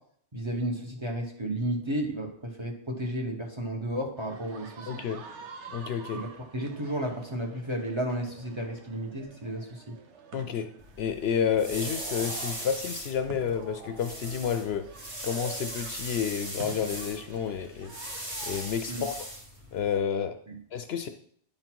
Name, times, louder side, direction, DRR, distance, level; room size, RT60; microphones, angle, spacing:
voice 1, 0.3-4.9 6.1-9.9 18.9-19.1 20.5-20.6, right 1 dB, 25° right, 1 dB, 1.0 m, -33 dB
sound 1, 4.2-18.7, right 5 dB, 70° right, 1.1 m, -47 dB
voice 2, 4.9-5.2 5.7-6.2 10.3-10.7 11.0-14.9 15.2-17.9 18.4-19.3 19.7-20.4 20.7-21.1, left 7 dB, 65° left, 8 dB, 0.7 m, -30 dB
sound 2, 10.8-20.0, right 1 dB, 45° right, 2.0 m, -39 dB
10.5 x 3.9 x 4.5 m, 0.62 s
omnidirectional pair, 1.2 m